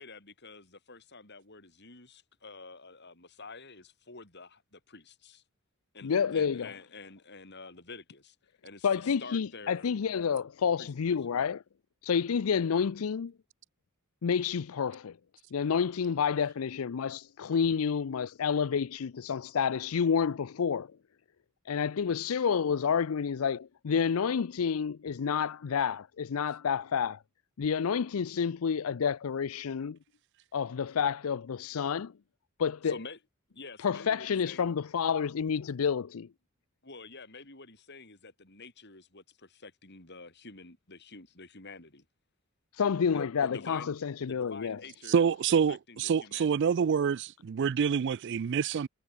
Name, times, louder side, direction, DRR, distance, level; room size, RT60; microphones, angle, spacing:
voice 1, 0.0-5.4 5.9-8.4 8.6-9.9 10.8-11.5 32.8-33.2 33.5-34.8 36.8-42.0 43.1-43.9 44.2-45.3 45.7-46.6, left 3 dB, 55° left, 7.7 m, -48 dB
voice 2, 6.0-6.7 8.8-11.6 12.0-13.3 14.2-15.2 15.5-20.9 21.7-27.2 27.6-30.0 30.5-32.1 32.6-32.9 33.8-36.3 42.7-44.8, left 6 dB, 80° left, 0.5 m, -29 dB
voice 3, 45.1-48.9, right 7 dB, 55° right, 0.4 m, -27 dB
head